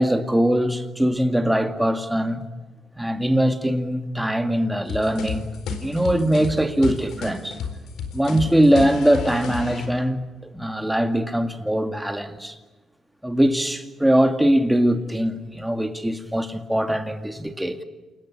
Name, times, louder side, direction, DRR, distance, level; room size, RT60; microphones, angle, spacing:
voice 1, 0.0-2.4 3.0-5.5 5.8-7.6 8.1-12.6 13.2-17.8, right 1 dB, 5° right, 2.2 m, -21 dB
sound 1, 4.9-9.9, left 5 dB, 75° left, 4.2 m, -31 dB
28.0 x 20.5 x 9.8 m
cardioid pair, 90°, 0 cm